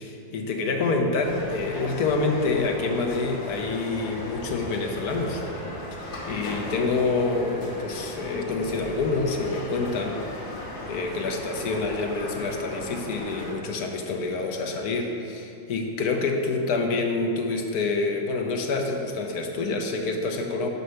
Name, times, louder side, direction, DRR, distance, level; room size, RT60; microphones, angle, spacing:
voice 1, 0.0-5.4 5.9-10.6 10.9-20.7, left 3 dB, 75° left, 2 dB, 1.3 m, -27 dB
sound 1, 1.2-13.5, left 1 dB, 50° left, 1.3 m, -37 dB
5.6 x 5.4 x 6.3 m, 2.8 s
omnidirectional pair, 1.6 m